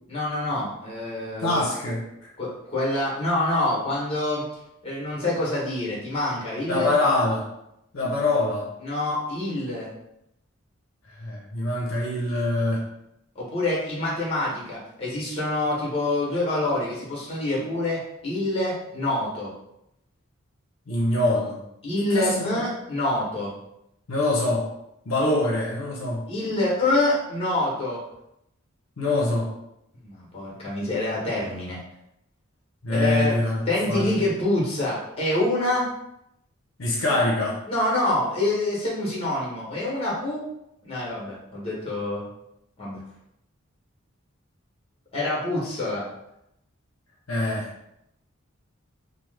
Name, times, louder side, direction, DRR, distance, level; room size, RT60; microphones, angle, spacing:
voice 1, 0.1-1.6 2.4-4.4 4.8-6.9 8.8-9.9 13.3-19.5 21.8-23.5 26.3-28.0 29.9-31.8 32.9-33.3 33.7-35.9 37.7-40.4 40.8-42.3 42.8-43.0 45.1-46.1, left 1 dB, 30° left, -5 dB, 1.0 m, -26 dB
voice 2, 1.4-2.0 6.7-7.5 7.9-8.7 11.2-12.8 20.9-21.6 22.1-22.6 24.1-24.7 25.1-26.2 29.0-29.5 32.8-34.1 36.8-37.6 47.3-47.7, left 2 dB, 75° left, -3 dB, 0.6 m, -24 dB
3.0 x 2.0 x 3.2 m, 0.82 s
head